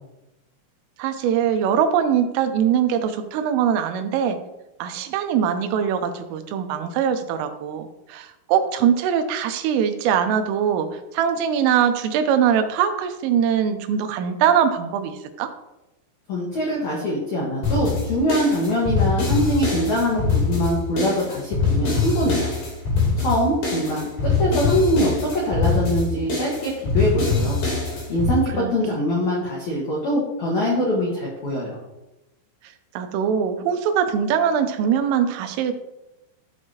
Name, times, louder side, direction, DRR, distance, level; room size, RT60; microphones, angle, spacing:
voice 1, 1.0-4.4 4.8-15.5 28.5-29.0 32.9-35.7, right 8 dB, 80° right, 8 dB, 3.2 m, -22 dB
voice 2, 16.3-22.5 23.2-27.6 28.1-31.8, equal, 85° left, -4 dB, 1.6 m, -23 dB
sound 1, 17.6-28.3, left 4 dB, 45° left, 4.2 m, -23 dB
12.5 x 6.4 x 2.9 m, 0.96 s
omnidirectional pair, 5.9 m